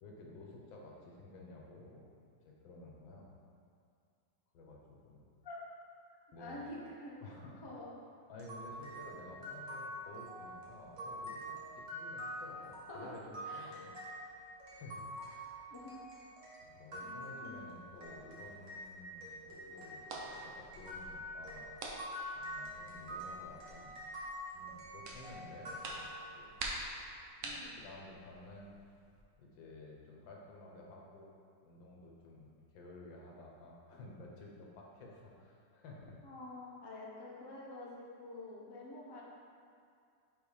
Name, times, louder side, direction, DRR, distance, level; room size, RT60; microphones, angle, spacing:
voice 1, 0.0-2.1 2.4-3.3 4.5-5.2 6.3-6.6 7.2-7.6 8.3-13.9 14.7-15.7 16.6-24.1 24.5-26.1 26.3-26.7 27.4-28.7 29.4-31.3 31.6-36.2, left 2 dB, 85° left, -2 dB, 1.7 m, -53 dB
voice 2, 6.4-7.1 7.6-7.9 12.9-13.2 13.5-13.7 15.3-15.4 15.7-16.0 17.0-17.6 27.4-27.7 36.2-39.2, left 2 dB, 35° left, -5 dB, 0.4 m, -48 dB
sound 1, 8.4-18.9 19.2-26.6, equal, 40° right, 1.2 m, -46 dB
sound 2, 18.0-29.2, right 2 dB, 60° right, 1.0 m, -49 dB
5.5 x 4.1 x 4.9 m, 2.3 s
omnidirectional pair, 2.0 m